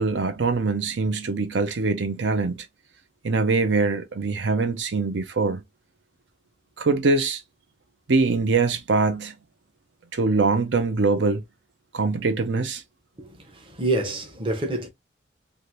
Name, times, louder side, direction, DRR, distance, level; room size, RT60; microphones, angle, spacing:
voice 1, 0.0-2.7 3.2-5.6 6.8-7.4 8.1-9.3 10.1-11.4 11.9-12.8, right 3 dB, 80° right, 0.6 m, -23 dB
voice 2, 13.2-14.9, right 2 dB, 30° right, 0.7 m, -27 dB
3.3 x 2.5 x 2.7 m
head